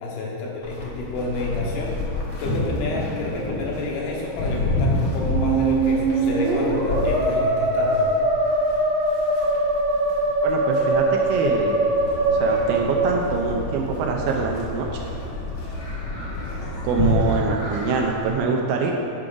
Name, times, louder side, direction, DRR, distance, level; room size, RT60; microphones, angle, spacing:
voice 1, 0.0-2.0 2.4-8.0, left 2 dB, 80° left, -3 dB, 3.0 m, -29 dB
Livestock farm animals working animals, 0.6-18.3, left 2 dB, 65° left, 1.0 m, -30 dB
Musical instrument, 5.2-13.9, right 2 dB, 65° right, 1.5 m, -22 dB
voice 2, 10.4-11.8 12.3-14.9 16.8-18.9, right 4 dB, 80° right, 1 dB, 2.2 m, -24 dB
sound 1, 11.8-17.4, left 1 dB, 50° left, 1.3 m, -34 dB
9.7 x 4.8 x 3.8 m, 2.8 s
omnidirectional pair, 4.4 m